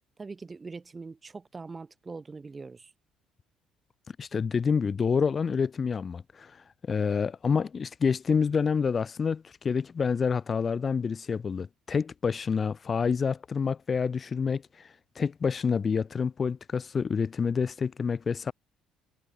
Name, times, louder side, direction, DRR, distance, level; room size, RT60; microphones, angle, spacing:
voice 1, 0.2-2.9, right 4 dB, 25° right, 1.0 m, -42 dB
voice 2, 4.2-18.5, left 6 dB, 35° left, 0.4 m, -28 dB
figure-of-eight pair, 50°, 0 cm